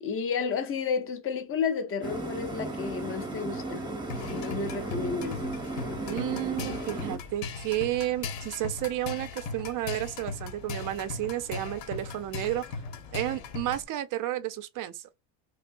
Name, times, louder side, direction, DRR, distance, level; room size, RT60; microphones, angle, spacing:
voice 1, 0.0-3.9 4.3-5.4, left 5 dB, 25° left, 0.8 m, -31 dB
sound 1, 2.0-7.2, right 2 dB, 10° right, 0.7 m, -35 dB
sound 2, 4.1-13.8, left 4 dB, 85° left, 1.2 m, -38 dB
voice 2, 6.1-12.7 13.1-15.0, right 14 dB, 40° right, 0.5 m, -32 dB
5.3 x 2.1 x 2.5 m
cardioid pair, 125°, 48 cm